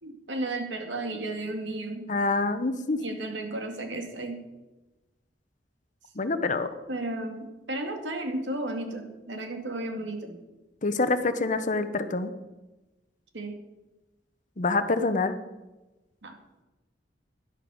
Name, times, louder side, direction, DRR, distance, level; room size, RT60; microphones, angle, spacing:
voice 1, 0.0-2.1 3.0-4.4 6.9-10.4 13.3-13.6 16.2-16.4, right 2 dB, 80° right, 4 dB, 2.2 m, -34 dB
voice 2, 2.1-3.0 6.2-6.7 10.8-12.3 14.6-15.4, left 3 dB, 45° left, 10 dB, 0.9 m, -26 dB
12.5 x 10.5 x 6.3 m, 1.1 s
head